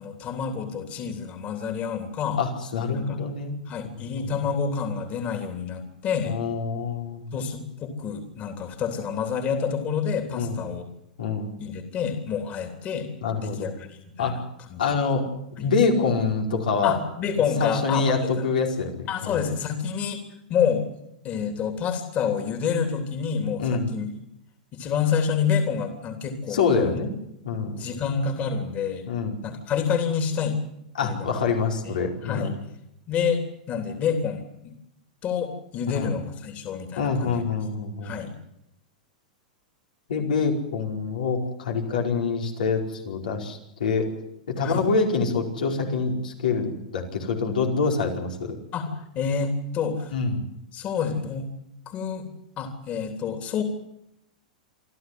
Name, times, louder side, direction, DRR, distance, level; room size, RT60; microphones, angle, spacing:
voice 1, 0.0-2.4 2.9-3.2 3.7-6.4 7.3-10.9 11.6-13.1 13.4-14.4 14.7-14.9 15.6-15.7 16.8-18.4 19.1-20.2 20.5-20.9 21.2-24.1 24.7-27.0 27.8-29.1 29.4-30.6 31.0-31.4 31.8-32.0 32.2-32.5 33.1-34.7 35.2-37.4 38.0-38.3 44.6-44.8 48.7-50.1 50.7-51.5 51.9-52.3 52.6-53.6, left 6 dB, 35° left, 6 dB, 3.3 m, -28 dB
voice 2, 2.4-3.6 4.2-4.3 6.2-7.3 10.4-10.6 11.2-11.5 13.2-13.8 14.2-14.4 14.8-15.3 15.5-17.0 17.6-19.4 23.6-23.9 26.5-27.1 27.4-27.9 29.0-29.4 31.0-32.6 35.9-36.1 37.0-38.1 40.1-44.1 44.5-48.6 50.1-50.4, left 4 dB, 85° left, 1 dB, 5.0 m, -25 dB
27.5 x 12.5 x 9.5 m, 0.80 s
hypercardioid pair, 125°, 4 cm